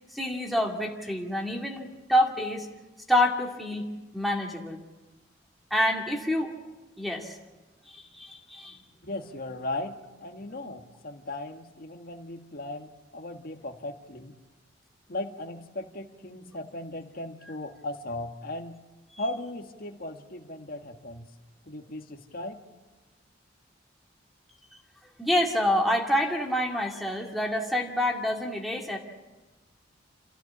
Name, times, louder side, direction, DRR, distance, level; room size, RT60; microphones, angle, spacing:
voice 1, 0.1-2.7 3.1-3.9 4.1-4.8 5.7-6.5 7.0-7.4 7.9-8.8 17.4-17.5 25.2-29.0, left 1 dB, ahead, 1 dB, 2.2 m, -27 dB
voice 2, 9.0-9.9 10.2-14.4 15.1-18.8 19.2-21.3 21.6-22.6, left 1 dB, 50° left, 5 dB, 1.7 m, -37 dB
27.0 x 15.5 x 8.6 m, 1.2 s
head